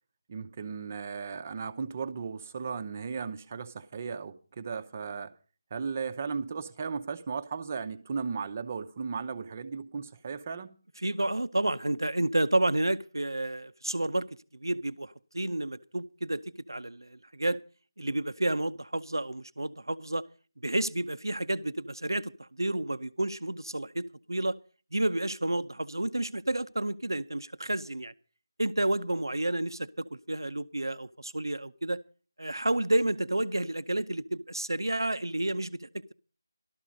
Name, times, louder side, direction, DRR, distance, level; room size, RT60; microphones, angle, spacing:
voice 1, 0.3-5.3 5.7-10.7, right 5 dB, 30° right, 0.8 m, -36 dB
voice 2, 11.0-14.3 14.5-16.4 16.7-17.6 18.0-20.2 20.6-24.6 24.9-28.1 28.6-32.0 32.4-35.9, right 1 dB, 80° right, 0.7 m, -30 dB
13.5 x 12.5 x 5.2 m
figure-of-eight pair, 160°, 2 cm